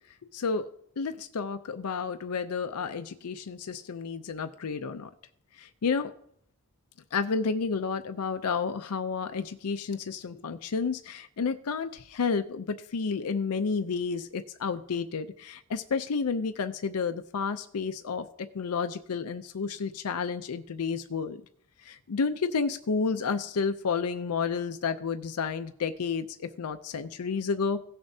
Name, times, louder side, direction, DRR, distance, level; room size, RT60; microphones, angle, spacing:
voice 1, 0.3-0.7 1.0-5.1 5.6-6.1 7.1-18.3 18.5-21.4 21.8-27.8, left 5 dB, 90° left, 9 dB, 0.5 m, -31 dB
17.0 x 6.8 x 2.7 m, 0.69 s
head